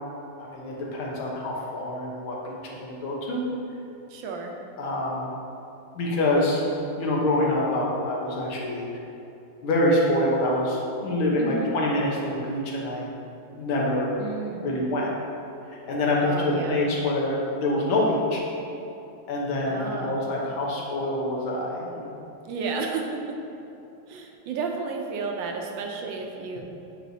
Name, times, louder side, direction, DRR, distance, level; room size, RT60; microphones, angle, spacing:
voice 1, 0.4-3.4 4.8-5.3 6.0-6.6 7.0-8.9 9.6-13.1 13.5-14.1 14.6-15.1 15.7-18.4 19.3-22.1, left 1 dB, 85° left, -3 dB, 1.9 m, -26 dB
voice 2, 4.1-4.6 11.4-11.7 14.2-14.7 16.2-16.8 19.7-20.2 22.4-23.4 24.1-26.6, right 4 dB, 75° right, 2 dB, 1.3 m, -32 dB
8.2 x 4.6 x 2.7 m, 2.8 s
omnidirectional pair, 2.2 m